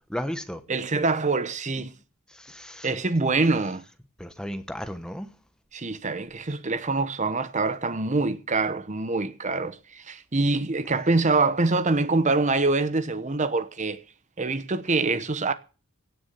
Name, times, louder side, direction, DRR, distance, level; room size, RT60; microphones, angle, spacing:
voice 1, 0.0-0.6 2.3-2.9 4.2-5.3, equal, 5° left, 1.0 m, -34 dB
voice 2, 0.7-1.9 2.8-3.8 5.7-14.0 14.4-15.5, right 3 dB, 35° right, 0.9 m, -25 dB
17.0 x 7.0 x 6.8 m
head